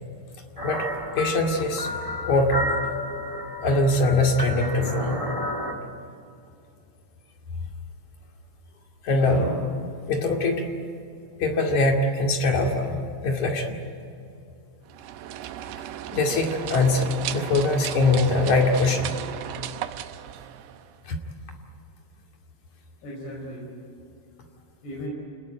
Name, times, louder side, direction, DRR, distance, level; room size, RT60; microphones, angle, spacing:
voice 1, 0.2-0.5 1.2-1.3 3.1-3.2 9.2-9.6 15.4-15.5 21.4-21.5 23.0-23.7 24.8-25.1, left 1 dB, 75° left, -3 dB, 7.2 m, -37 dB
sound 1, 0.6-5.7, left 1 dB, 20° right, 1.0 m, -31 dB
voice 2, 1.1-1.9 2.3-2.6 3.6-5.2 9.0-9.5 10.1-10.6 11.4-13.8 16.1-19.1 21.1-21.2, left 2 dB, 50° left, 2 dB, 3.4 m, -22 dB
sound 2, 14.9-21.0, right 11 dB, 85° right, 3.0 m, -35 dB
29.0 x 20.0 x 9.1 m, 2.7 s
omnidirectional pair, 4.8 m